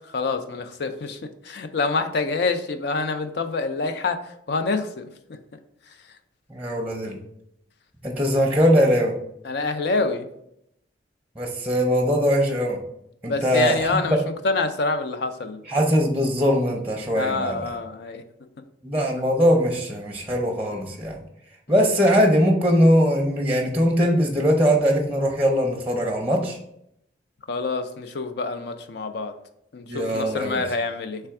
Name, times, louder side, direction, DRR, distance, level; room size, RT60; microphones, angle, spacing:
voice 1, 0.1-1.2 1.4-4.2 4.5-5.0 9.4-10.3 13.2-14.2 14.4-15.6 17.1-18.2 27.5-29.3 29.7-31.2, left 3 dB, 65° left, 8 dB, 0.5 m, -26 dB
voice 2, 6.5-7.2 8.0-9.1 11.4-12.8 13.2-14.2 15.7-17.8 18.8-21.2 21.7-26.6 29.9-30.6, equal, 10° right, 1 dB, 0.6 m, -21 dB
3.4 x 3.4 x 4.6 m, 0.76 s
head